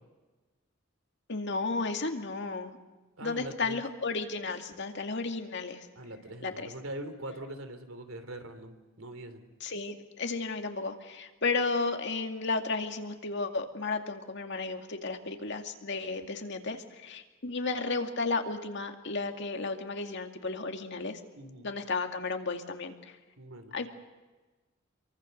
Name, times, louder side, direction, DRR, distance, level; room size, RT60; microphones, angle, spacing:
voice 1, 1.3-2.8 3.2-5.9 6.4-6.7 9.6-21.2 21.6-23.2 23.7-23.9, left 3 dB, 60° left, 5 dB, 2.3 m, -33 dB
voice 2, 3.2-3.8 5.9-9.4 21.4-21.7 23.4-23.7, right 1 dB, 80° right, 8 dB, 3.1 m, -42 dB
27.5 x 24.0 x 6.6 m, 1.2 s
head